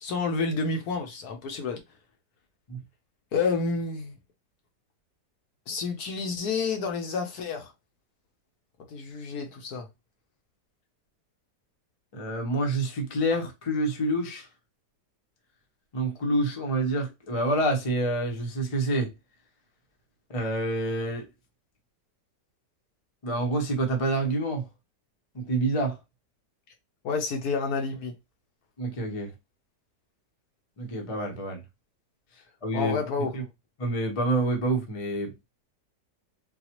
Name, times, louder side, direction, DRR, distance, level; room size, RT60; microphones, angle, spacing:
voice 1, 0.0-1.8 3.3-4.2 5.7-7.7 8.9-9.9 27.0-28.1 32.7-33.5, left 4 dB, 65° left, 1.2 m, -29 dB
voice 2, 12.1-14.5 15.9-19.1 20.3-21.3 23.2-24.6 25.3-26.0 28.8-29.3 30.8-31.6 32.6-33.0 33.3-33.4 33.8-35.3, right 1 dB, 30° left, 0.6 m, -27 dB
3.9 x 2.3 x 2.9 m
omnidirectional pair, 1.9 m